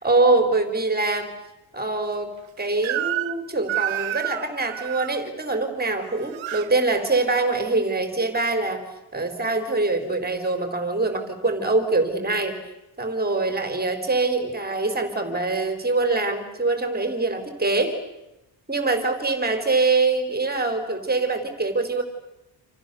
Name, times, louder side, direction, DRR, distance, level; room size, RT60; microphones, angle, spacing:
voice 1, 0.0-1.3 1.7-8.8 9.1-12.6 13.0-18.0 18.7-22.0, right 3 dB, 20° right, 7 dB, 4.2 m, -24 dB
Crying sobbing / Screech, 2.8-3.4 3.7-5.2 6.0-6.7, right 15 dB, 80° right, 1.0 m, -29 dB
29.0 x 28.0 x 7.0 m, 0.96 s
wide cardioid pair, 145°, 46 cm